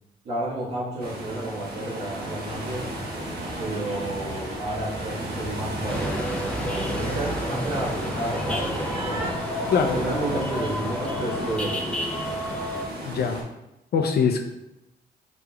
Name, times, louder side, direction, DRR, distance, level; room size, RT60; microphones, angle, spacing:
voice 1, 0.2-2.9 3.6-9.3 9.9-11.9, right 1 dB, 80° right, -10 dB, 1.4 m, -31 dB
sound 1, 1.0-13.4, right 1 dB, 65° right, 1.1 m, -35 dB
sound 2, 2.4-9.3, right 1 dB, 35° right, 0.9 m, -38 dB
sound 3, 5.9-12.8, equal, 5° left, 0.5 m, -31 dB
voice 2, 13.1-13.4 13.9-14.4, left 6 dB, 65° left, 4 dB, 0.5 m, -22 dB
4.9 x 3.4 x 2.3 m, 0.91 s
cardioid pair, 75°, 18 cm